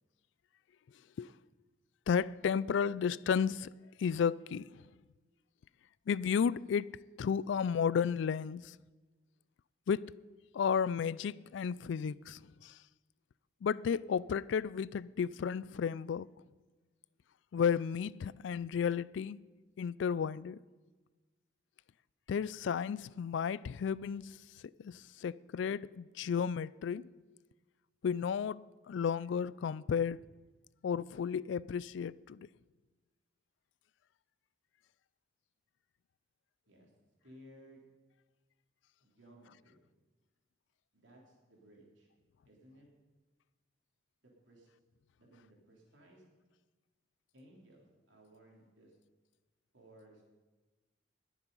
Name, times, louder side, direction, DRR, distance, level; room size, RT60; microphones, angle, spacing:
voice 1, 2.1-3.7 4.0-4.8 6.1-8.8 9.9-10.1 10.5-12.8 13.6-16.3 17.5-19.4 19.8-20.6 22.3-24.4 24.8-27.1 28.0-30.2 30.8-32.5, left 7 dB, 70° left, 0.3 m, -33 dB
voice 2, 37.2-37.9 39.0-39.8 40.9-42.1 42.4-42.9 44.2-44.7 45.2-46.2 47.3-48.9 49.7-50.2, equal, 75° right, 3.3 m, -59 dB
20.0 x 7.2 x 5.4 m
head